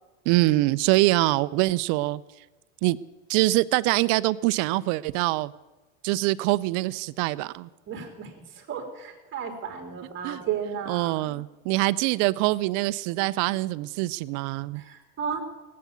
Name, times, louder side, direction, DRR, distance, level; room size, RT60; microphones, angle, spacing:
voice 1, 0.3-2.2 2.8-3.0 3.3-5.5 6.0-7.7 10.2-10.4 10.9-14.8, right 19 dB, 50° right, 17 dB, 0.6 m, -24 dB
voice 2, 7.9-11.4 14.8-15.4, right 7 dB, 30° right, 3 dB, 3.6 m, -34 dB
17.5 x 8.6 x 8.2 m, 1.2 s
supercardioid pair, 130°, 39 cm